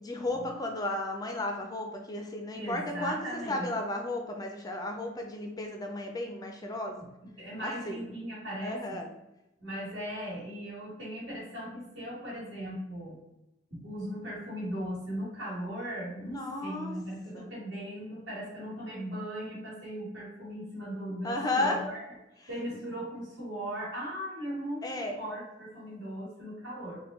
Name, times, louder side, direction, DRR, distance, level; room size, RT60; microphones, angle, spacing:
voice 1, 0.0-7.0 7.6-8.0 8.6-9.1 16.3-17.0 17.3-17.5 21.2-21.8 24.8-25.2, left 2 dB, 20° left, 3 dB, 0.3 m, -34 dB
voice 2, 2.5-3.7 7.4-8.8 9.6-13.2 13.7-22.0 22.5-24.8 25.2-27.0, equal, 75° right, -8 dB, 1.5 m, -38 dB
3.4 x 2.1 x 3.0 m, 0.94 s
head